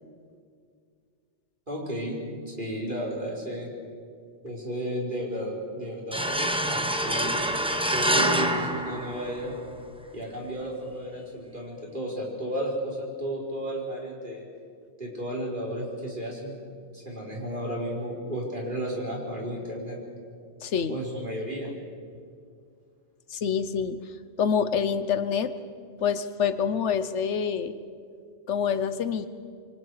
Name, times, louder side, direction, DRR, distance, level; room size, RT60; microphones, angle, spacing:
voice 1, 1.7-3.7 4.4-7.3 7.9-9.5 10.1-14.4 15.0-16.6 16.9-20.0 20.9-21.7, equal, 45° right, -3 dB, 5.0 m, -33 dB
sound 1, 6.1-9.7, right 1 dB, 5° right, 1.0 m, -26 dB
voice 2, 20.6-21.0 23.3-24.0 24.4-25.5 26.0-27.7 28.5-29.3, left 7 dB, 90° left, 12 dB, 1.2 m, -26 dB
27.5 x 23.5 x 4.9 m, 2.2 s
omnidirectional pair, 1.2 m